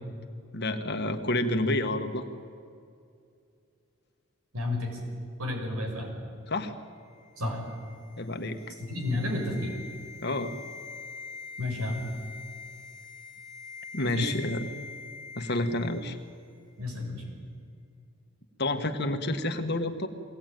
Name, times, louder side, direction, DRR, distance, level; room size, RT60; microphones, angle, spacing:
voice 1, 0.5-2.2 6.5-6.7 8.2-8.7 10.2-10.5 13.9-14.7 15.4-16.2 18.6-20.1, left 1 dB, 50° left, 6 dB, 1.6 m, -29 dB
voice 2, 4.5-4.9 5.4-6.1 7.4-7.6 8.9-9.7 11.6-12.0 14.1-14.3 16.8-17.2, left 2 dB, 90° right, 1 dB, 6.0 m, -31 dB
sound 1, 7.0-16.3 16.6-16.7, left 5 dB, 60° right, 5.6 m, -45 dB
23.0 x 17.5 x 9.3 m, 2.4 s
head